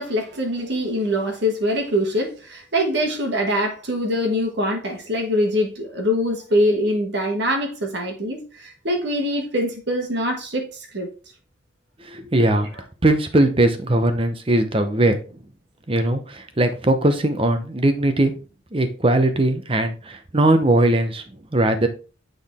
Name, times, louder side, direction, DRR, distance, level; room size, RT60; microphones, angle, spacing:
voice 1, 0.0-11.1, equal, 55° right, 1.3 m, -23 dB
voice 2, 12.1-12.7 13.0-15.2 15.9-18.3 18.7-21.2 21.5-21.9, right 1 dB, 25° right, 0.7 m, -19 dB
8.7 x 3.9 x 3.5 m
head